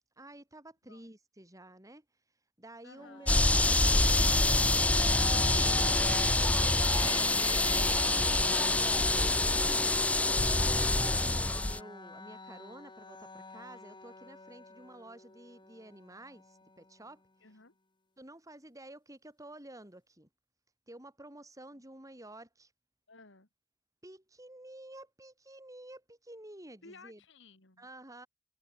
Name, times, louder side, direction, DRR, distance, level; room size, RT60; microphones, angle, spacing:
voice 1, 0.2-2.1 2.6-6.0 7.0-17.2 18.2-20.3 20.9-22.7 24.0-27.2 27.8-28.3, right 1 dB, 15° right, 7.2 m, -51 dB
voice 2, 2.8-3.3 14.8-14.9 17.4-17.8 21.7-21.8 23.1-23.5 26.8-27.9, left 3 dB, 65° left, 3.2 m, -56 dB
sound 1, 3.0-16.9, left 3 dB, 25° left, 2.7 m, -45 dB
sound 2, 3.3-11.8, left 2 dB, 5° left, 0.3 m, -26 dB
head